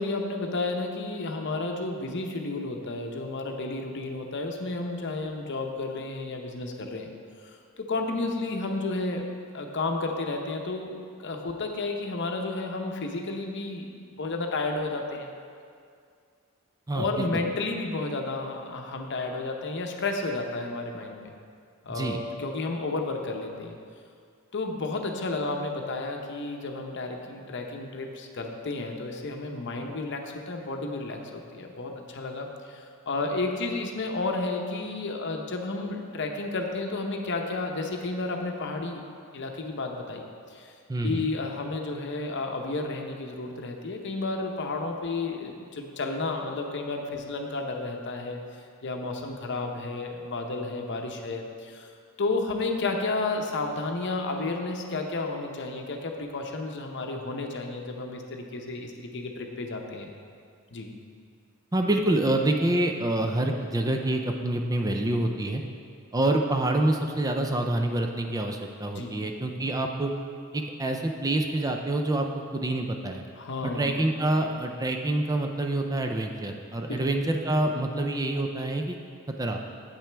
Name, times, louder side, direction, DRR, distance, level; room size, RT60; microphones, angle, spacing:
voice 1, 0.0-7.1 7.4-9.3 9.5-15.3 16.9-21.3 21.8-23.8 24.5-39.0 39.3-40.3 40.5-40.7 41.0-48.4 48.8-51.9 52.2-60.1 60.7-60.9 68.9-69.2 73.4-74.0 76.9-77.0, left 3 dB, 55° left, 3 dB, 0.8 m, -32 dB
voice 2, 16.9-17.4 21.9-22.2 40.9-41.3 61.7-65.6 66.1-70.1 70.5-72.3 72.5-73.3 73.6-79.0 79.3-79.6, right 1 dB, 15° right, 3 dB, 0.4 m, -27 dB
9.0 x 8.2 x 3.4 m, 2.3 s
head